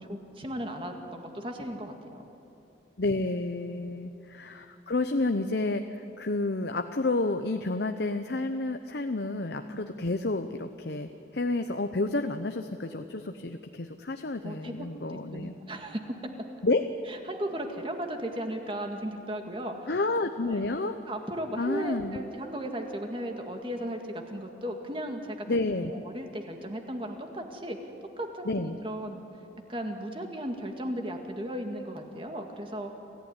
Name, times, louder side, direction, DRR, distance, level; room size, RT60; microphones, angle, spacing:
voice 1, 0.1-2.2 3.7-4.0 9.7-9.9 14.4-16.0 17.1-19.9 20.4-20.6 21.1-25.5 25.8-27.8 28.2-29.3 29.7-32.9, right 1 dB, 30° right, 4 dB, 2.1 m, -36 dB
voice 2, 3.0-15.5 16.6-16.9 19.9-21.0 21.6-22.2 25.5-26.0 28.4-28.8, left 2 dB, 60° left, 7 dB, 0.8 m, -30 dB
27.0 x 15.5 x 9.7 m, 2.8 s
head